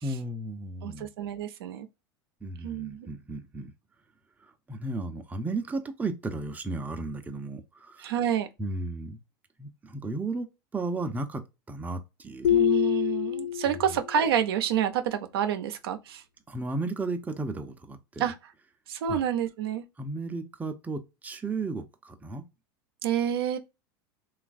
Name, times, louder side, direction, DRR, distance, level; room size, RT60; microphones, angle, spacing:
voice 1, 0.0-1.1 2.4-3.7 4.4-8.1 8.6-9.2 9.6-12.5 13.7-14.0 16.5-18.3 19.1-19.2 20.0-22.5, right 3 dB, 10° right, 0.5 m, -34 dB
voice 2, 0.8-1.9 2.6-3.1 8.0-8.5 12.5-16.2 18.2-18.4 18.9-19.8 23.0-23.6, right 9 dB, 75° right, 0.5 m, -28 dB
sound 1, 12.4-14.1, left 11 dB, 75° left, 0.4 m, -25 dB
3.1 x 2.4 x 2.4 m
hypercardioid pair, 95°, 13 cm